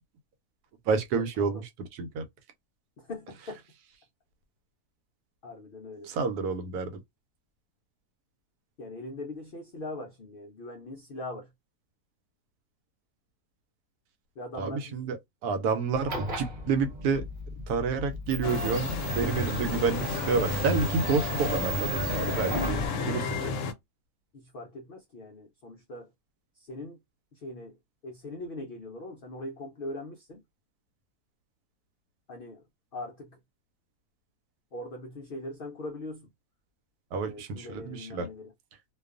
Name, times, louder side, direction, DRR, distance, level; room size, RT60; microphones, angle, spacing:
voice 1, 0.9-2.3 6.0-7.0 14.5-17.2 17.7-23.5 37.1-38.3, right 5 dB, 85° right, 1.1 m, -29 dB
voice 2, 3.0-3.6 5.4-6.1 8.8-11.5 14.4-15.1 24.3-26.1 26.6-27.0 27.3-30.4 32.3-32.6 32.9-33.4 34.7-36.3 37.2-38.5, left 2 dB, 85° left, 0.4 m, -41 dB
sound 1, 15.9-22.9, right 2 dB, 40° right, 0.9 m, -36 dB
sound 2, 18.4-23.7, left 4 dB, 70° left, 0.8 m, -31 dB
2.5 x 2.3 x 2.4 m
omnidirectional pair, 1.6 m